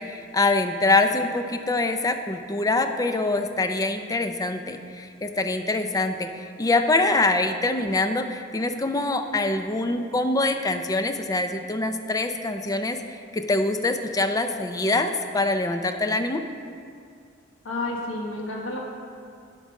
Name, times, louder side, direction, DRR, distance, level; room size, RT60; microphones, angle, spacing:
voice 1, 0.0-16.4, left 2 dB, 20° left, 7 dB, 0.4 m, -24 dB
voice 2, 17.6-18.8, left 2 dB, 75° left, -1 dB, 1.4 m, -30 dB
10.5 x 5.3 x 5.2 m, 2.3 s
head